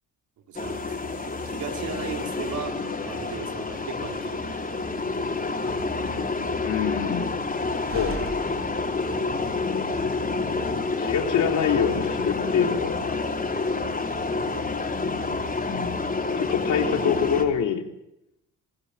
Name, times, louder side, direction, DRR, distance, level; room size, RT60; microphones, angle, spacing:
sound 1, 0.5-17.4, left 3 dB, 30° left, 4.8 m, -28 dB
voice 1, 0.5-2.8 3.0-4.6, right 6 dB, 75° right, 3 dB, 5.2 m, -37 dB
Slam, 4.0-9.5, right 3 dB, 45° right, 4.5 m, -43 dB
voice 2, 6.6-7.3 7.9-8.3 11.0-13.2 15.7-16.0 16.4-17.8, left 8 dB, 80° left, 5 dB, 3.6 m, -25 dB
27.5 x 18.0 x 8.9 m, 0.85 s
cardioid pair, 90°, 30 cm